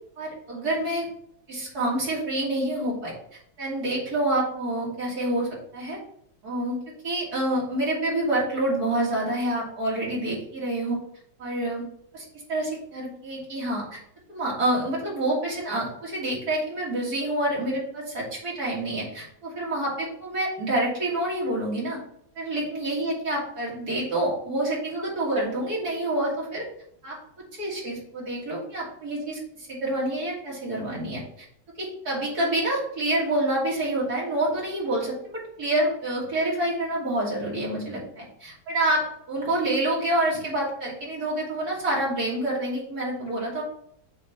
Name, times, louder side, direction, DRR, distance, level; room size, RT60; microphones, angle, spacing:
voice 1, 0.2-1.1 1.5-6.0 6.4-6.8 7.0-11.0 11.4-11.9 12.1-14.0 14.3-22.0 22.3-26.7 27.0-27.2 27.6-31.2 31.8-43.6, right 1 dB, 50° right, -5 dB, 3.4 m, -27 dB
8.2 x 3.6 x 5.9 m, 0.67 s
omnidirectional pair, 2.1 m